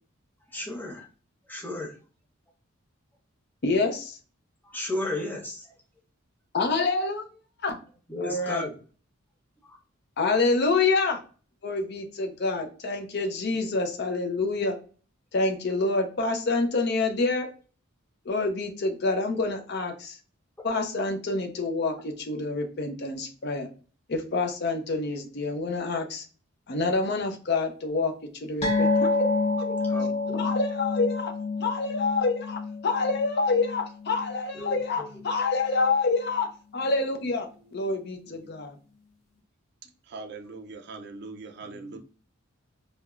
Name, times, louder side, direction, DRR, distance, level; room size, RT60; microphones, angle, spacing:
voice 1, 0.5-1.1 1.5-2.0 4.6-5.7 8.1-8.7 9.6-9.8 20.6-20.7 29.8-30.5 34.5-35.1 41.6-42.0, left 1 dB, 10° left, -1 dB, 0.7 m, -34 dB
voice 2, 3.6-4.2 6.5-7.2 7.6-7.8 8.2-8.7 10.2-11.2 11.6-14.7 15.3-17.5 18.3-20.2 20.6-23.7 24.1-26.2 26.7-28.1 28.4-29.3 29.6-29.7 30.3-31.3 31.6-38.8, left 3 dB, 50° left, 5 dB, 0.5 m, -27 dB
sound 1, 28.6-35.4 35.7-35.9 36.3-36.4, left 3 dB, 30° left, 1.0 m, -29 dB
voice 3, 40.1-42.0, right 3 dB, 55° right, 4 dB, 0.4 m, -41 dB
4.6 x 2.1 x 2.4 m, 0.39 s
head